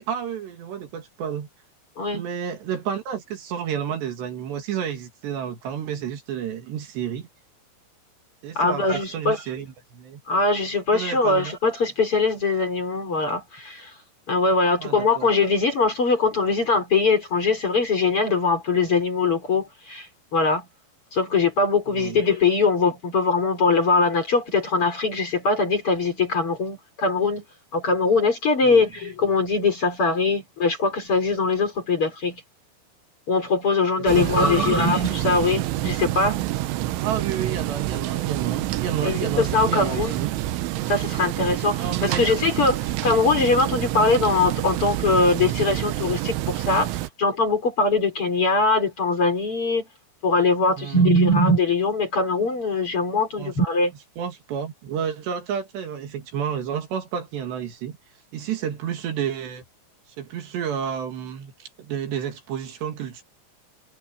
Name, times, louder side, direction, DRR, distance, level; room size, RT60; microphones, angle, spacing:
voice 1, 0.0-1.5 2.1-7.3 8.4-10.2 10.9-11.6 14.8-15.3 21.9-22.2 28.6-28.8 34.2-34.9 37.0-40.3 41.8-42.3 50.8-51.1 53.4-53.5 54.2-58.0 58.3-59.6 60.2-63.2, right 8 dB, 65° right, 4.2 m, -30 dB
voice 2, 8.6-9.4 10.3-13.9 14.3-20.1 20.3-20.7 21.1-27.4 27.7-32.4 33.3-36.4 39.0-40.2 40.9-46.9 47.2-49.9 50.2-53.9, left 3 dB, 30° left, 4.4 m, -22 dB
sound 1, 34.1-47.1, right 15 dB, 85° right, 3.5 m, -27 dB
omnidirectional pair, 5.4 m